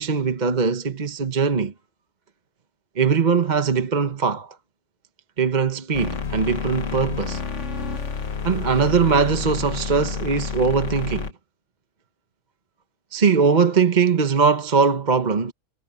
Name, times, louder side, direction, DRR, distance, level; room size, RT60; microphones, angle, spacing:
voice 1, 0.0-1.7 2.9-4.6 5.4-7.4 8.4-11.3 13.1-15.5, right 5 dB, 35° right, 1.1 m, -21 dB
sound 1, 5.9-11.3, left 5 dB, 55° left, 1.7 m, -29 dB
omnidirectional pair, 1.5 m